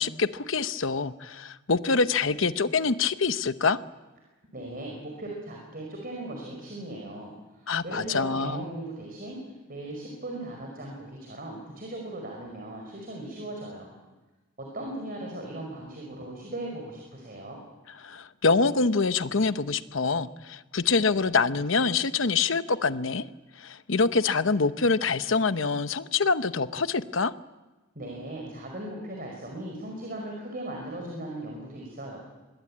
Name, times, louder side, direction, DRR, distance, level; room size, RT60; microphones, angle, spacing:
voice 1, 0.0-3.8 7.7-8.6 18.0-23.2 23.6-27.3, left 4 dB, 65° left, 12 dB, 0.9 m, -25 dB
voice 2, 4.5-9.4 9.7-14.0 14.6-17.6 28.0-32.2, right 1 dB, 45° right, 1 dB, 5.2 m, -38 dB
25.0 x 21.0 x 8.7 m, 1.1 s
head